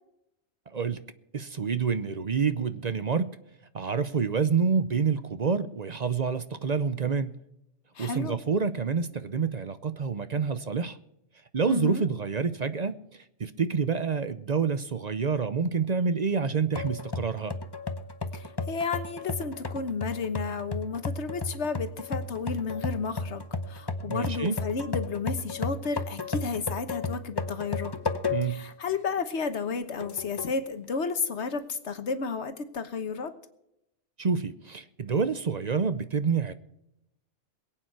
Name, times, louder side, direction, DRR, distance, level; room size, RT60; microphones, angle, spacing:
voice 1, 1.3-3.3 3.7-7.3 8.0-11.0 11.5-13.0 13.4-17.5 24.1-24.6 28.3-28.7 34.2-36.5, right 5 dB, 40° right, 0.7 m, -28 dB
voice 2, 7.9-8.4 11.7-12.0 18.3-27.9 28.4-33.3, left 5 dB, 70° left, 1.4 m, -32 dB
sound 1, 16.7-28.7 29.1-29.2 30.0-30.6, left 3 dB, 25° left, 0.8 m, -34 dB
22.0 x 8.9 x 4.6 m
omnidirectional pair, 1.2 m